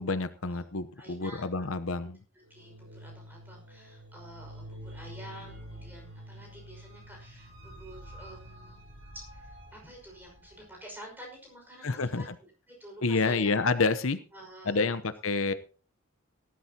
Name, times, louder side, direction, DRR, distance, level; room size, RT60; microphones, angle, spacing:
voice 1, 0.0-2.2 11.8-12.2 13.0-14.2 14.7-15.5, left 4 dB, 75° left, 12 dB, 0.9 m, -28 dB
voice 2, 0.9-1.8 2.5-8.8 9.1-12.3 12.7-13.5 14.3-15.0, equal, 10° right, 0 dB, 5.5 m, -49 dB
sound 1, 2.5-10.8, equal, 80° right, 7.0 m, -48 dB
18.0 x 12.0 x 2.9 m, 0.36 s
head